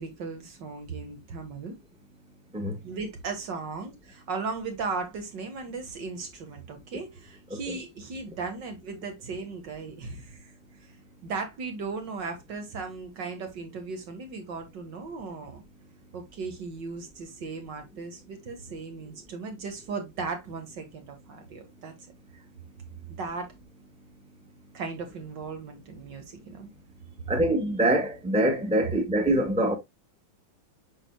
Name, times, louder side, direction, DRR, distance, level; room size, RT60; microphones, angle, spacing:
voice 1, 0.0-1.8 2.8-10.9 11.2-15.6 16.1-21.9 23.1-23.5 24.7-26.7, right 4 dB, 65° right, 2.2 m, -37 dB
voice 2, 27.3-29.7, right 1 dB, 5° right, 1.0 m, -24 dB
7.9 x 5.9 x 2.2 m
omnidirectional pair, 2.1 m